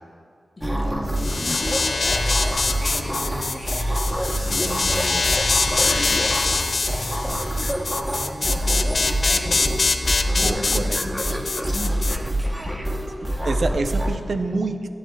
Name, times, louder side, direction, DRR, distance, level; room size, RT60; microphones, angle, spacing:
voice 1, 0.6-2.5 2.8-3.7 4.2-7.5 7.9-9.9 10.3-12.4 12.9-13.2 14.0-14.6, left 1 dB, 40° left, -5 dB, 1.9 m, -39 dB
sound 1, 0.6-14.2, right 1 dB, 10° right, 0.9 m, -26 dB
sound 2, 1.2-12.2, left 3 dB, 60° left, 0.5 m, -24 dB
voice 2, 4.4-5.3 10.4-11.0 13.2-14.9, right 3 dB, 65° right, 7 dB, 0.7 m, -28 dB
23.0 x 7.7 x 2.3 m, 2.3 s
wide cardioid pair, 75°, 0 cm